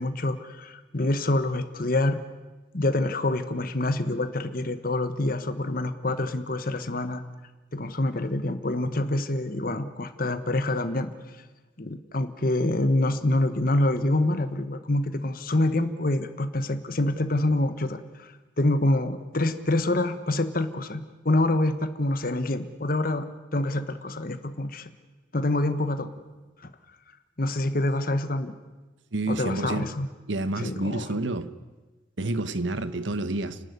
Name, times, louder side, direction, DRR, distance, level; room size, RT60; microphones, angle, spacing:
voice 1, 0.0-2.2 2.7-7.2 7.7-11.1 11.8-23.3 23.5-24.9 25.3-26.1 27.4-28.5 29.3-30.1 30.6-31.0, left 1 dB, 50° left, 1.2 m, -26 dB
voice 2, 29.1-29.9 30.3-31.5 32.2-33.6, right 2 dB, 80° right, 1.2 m, -29 dB
29.5 x 12.5 x 9.5 m
head